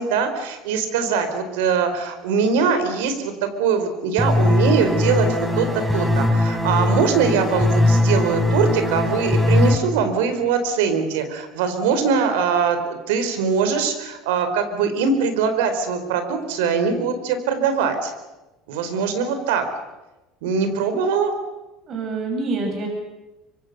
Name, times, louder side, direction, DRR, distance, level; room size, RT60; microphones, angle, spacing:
voice 1, 0.0-3.3 3.6-18.1 18.7-19.6 20.4-21.3, right 5 dB, 85° right, 8 dB, 4.4 m, -22 dB
sound 1, 4.2-9.8, left 1 dB, 10° right, 4.5 m, -20 dB
voice 2, 21.9-22.9, right 3 dB, 45° right, 3 dB, 7.4 m, -27 dB
26.0 x 24.5 x 6.8 m, 1.1 s
supercardioid pair, 95°, 0 cm